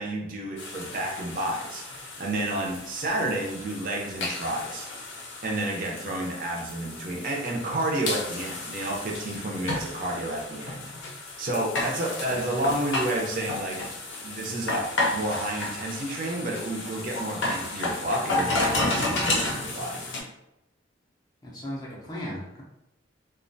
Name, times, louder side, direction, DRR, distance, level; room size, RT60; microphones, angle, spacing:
voice 1, 0.0-4.9 5.1-10.8 11.4-13.8 14.2-20.1, right 1 dB, 45° right, -1 dB, 0.5 m, -30 dB
sound 1, 0.6-20.2, left 2 dB, 70° left, 0.5 m, -32 dB
voice 2, 21.4-22.6, equal, 20° left, -5 dB, 0.4 m, -36 dB
2.3 x 2.1 x 2.6 m, 0.87 s
head